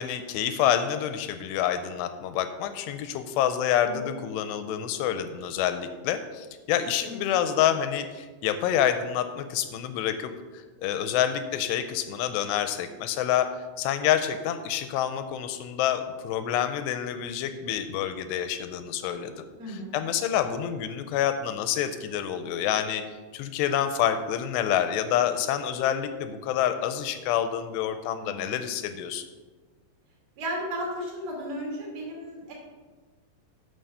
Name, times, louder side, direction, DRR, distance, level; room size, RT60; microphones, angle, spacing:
voice 1, 0.0-13.5 13.8-23.0 23.3-29.3, left 10 dB, 85° left, 9 dB, 2.6 m, -27 dB
voice 2, 7.0-7.3 19.6-19.9 28.2-28.5 30.4-32.5, equal, 35° right, -3 dB, 3.0 m, -35 dB
9.2 x 6.7 x 5.5 m, 1.3 s
omnidirectional pair, 5.1 m